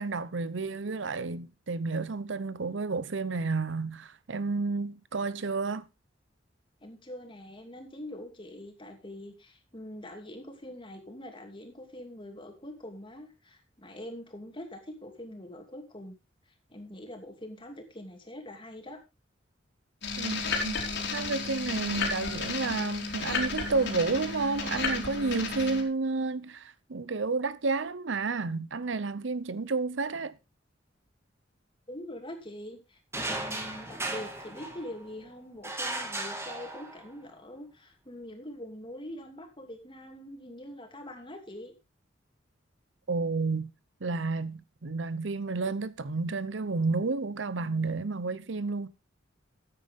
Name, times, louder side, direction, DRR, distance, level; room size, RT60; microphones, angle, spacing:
voice 1, 0.0-5.9 20.2-20.8 21.1-30.4 43.1-43.7 44.0-48.9, right 3 dB, 70° right, 0.7 m, -31 dB
voice 2, 6.8-16.1 16.7-19.0 31.9-41.7, left 1 dB, 25° left, 2.6 m, -44 dB
sound 1, 20.0-25.8, left 4 dB, 60° left, 3.5 m, -33 dB
sound 2, 33.1-35.1 35.6-37.2, right 2 dB, 15° right, 2.0 m, -36 dB
14.0 x 9.2 x 3.5 m
head